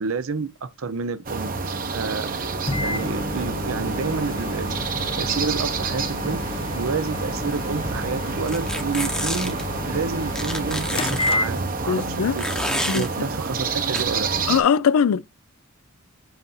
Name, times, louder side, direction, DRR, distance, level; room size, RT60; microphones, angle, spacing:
voice 1, 0.0-1.6 1.9-2.5 2.8-4.8 5.2-9.6 9.8-14.3, right 4 dB, 65° right, 0.6 m, -30 dB
sound 1, 1.2-14.6, right 4 dB, 40° right, 0.8 m, -29 dB
Microwave oven, 2.7-12.0, left 2 dB, 25° left, 0.5 m, -31 dB
sound 2, 8.5-9.6 10.4-11.4 12.4-13.1 13.9-14.0, equal, 5° left, 0.8 m, -28 dB
voice 2, 11.9-12.3 12.9-13.0 14.5-15.2, left 7 dB, 85° left, 0.4 m, -20 dB
7.8 x 2.6 x 5.5 m
head